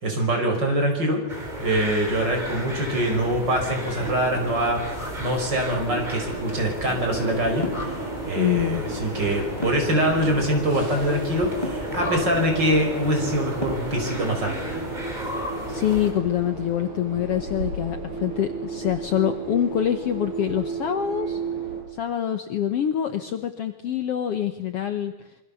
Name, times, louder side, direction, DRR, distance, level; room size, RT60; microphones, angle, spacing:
voice 1, 0.0-1.2 1.6-4.8 5.2-7.7 8.2-14.8, right 1 dB, 35° right, 3 dB, 5.8 m, -24 dB
sound 1, 1.3-16.1, equal, 15° right, 4.8 m, -35 dB
sound 2, 2.1-21.8, right 3 dB, 75° right, 8.2 m, -34 dB
sound 3, 7.6-7.9 9.6-10.0 11.6-11.9 13.6-14.0, left 2 dB, 10° left, 3.5 m, -32 dB
voice 2, 8.3-8.8 15.7-21.4 21.9-25.1, left 10 dB, 60° left, 8 dB, 1.8 m, -25 dB
27.0 x 24.5 x 7.1 m, 1.0 s
omnidirectional pair, 3.5 m